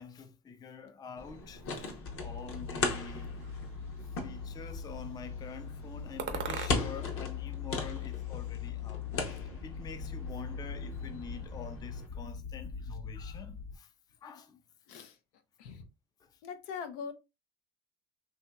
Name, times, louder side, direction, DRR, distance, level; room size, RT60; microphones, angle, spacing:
voice 1, 0.0-1.9 2.2-3.3 4.2-9.1 9.6-13.9 14.2-14.6 14.9-15.0, left 5 dB, 15° left, 0.3 m, -46 dB
sound 1, 1.2-12.1, left 3 dB, 40° left, 0.8 m, -39 dB
sound 2, 2.0-13.8, left 7 dB, 65° left, 1.3 m, -41 dB
sound 3, 3.0-4.0 4.6-5.3 6.2-7.1 7.4-8.5, right 6 dB, 35° right, 0.6 m, -42 dB
voice 2, 16.4-17.1, left 6 dB, 85° left, 0.6 m, -41 dB
2.8 x 2.7 x 2.2 m
supercardioid pair, 95°, 33 cm